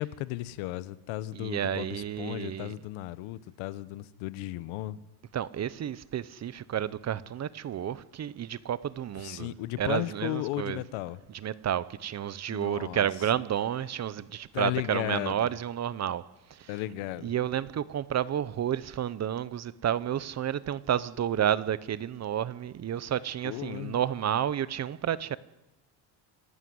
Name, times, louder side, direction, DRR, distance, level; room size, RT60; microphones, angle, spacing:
voice 1, 0.0-5.0 9.1-11.2 12.5-13.1 14.5-15.5 16.7-17.3 23.4-24.0, left 16 dB, 85° left, 1.1 m, -35 dB
voice 2, 1.3-2.7 5.3-10.8 11.4-16.2 16.5-16.7 17.2-25.4, right 10 dB, 35° right, 0.8 m, -31 dB
26.0 x 11.5 x 9.6 m
cardioid pair, 125°, 47 cm